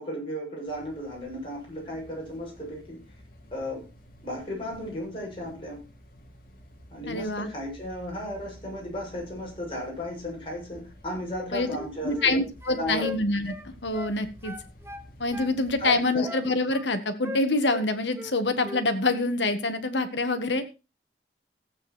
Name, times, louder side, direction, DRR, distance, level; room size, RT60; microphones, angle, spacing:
voice 1, 0.0-3.0 3.5-3.9 4.2-5.8 6.9-12.4 12.7-13.1 15.8-16.3, equal, 30° left, -3 dB, 7.8 m, -34 dB
sound 1, 0.7-16.0, equal, 55° left, 2.8 m, -51 dB
voice 2, 7.1-7.5 11.5-11.7 12.0-14.5 15.2-20.6, left 2 dB, 90° left, 9 dB, 1.8 m, -26 dB
sound 2, 11.6-12.4 12.6-14.2 14.4-15.6 15.8-16.9 17.2-18.3 18.6-18.9, left 2 dB, 15° right, 1.1 m, -39 dB
15.0 x 8.7 x 4.4 m, 0.30 s
head